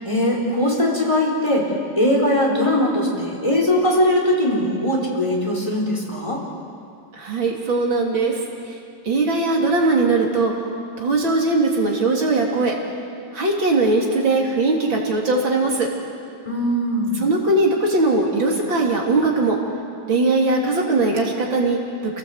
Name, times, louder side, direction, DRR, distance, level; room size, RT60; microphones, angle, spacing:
voice 1, 0.0-1.7 2.0-6.4 16.4-17.2, left 1 dB, 15° left, -2 dB, 4.6 m, -20 dB
voice 2, 7.2-8.4 9.0-10.5 11.0-12.8 13.3-15.9 17.2-19.6 20.1-21.8, right 3 dB, 85° right, -1 dB, 3.8 m, -20 dB
28.0 x 18.0 x 8.0 m, 2.5 s
omnidirectional pair, 2.1 m